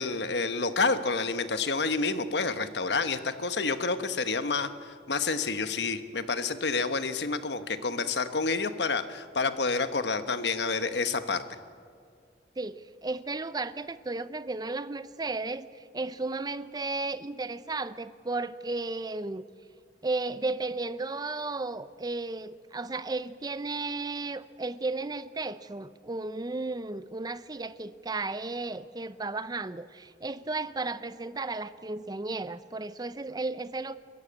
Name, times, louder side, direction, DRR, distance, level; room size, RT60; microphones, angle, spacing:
voice 1, 0.0-11.4, left 4 dB, 75° left, 10 dB, 1.2 m, -29 dB
voice 2, 12.6-19.4 20.0-34.0, right 3 dB, 25° right, 14 dB, 0.6 m, -34 dB
22.0 x 14.5 x 8.6 m, 2.2 s
head